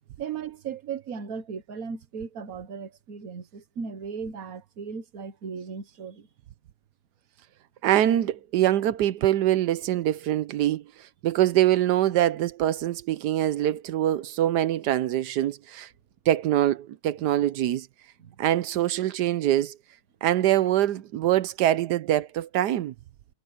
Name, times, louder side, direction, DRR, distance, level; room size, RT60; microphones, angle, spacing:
voice 1, 0.2-6.3 18.2-18.4, right 6 dB, 60° right, 1.7 m, -36 dB
voice 2, 7.8-15.9 16.3-17.9 18.4-19.8 20.2-22.9, right 12 dB, 85° right, 1.3 m, -24 dB
omnidirectional pair, 1.7 m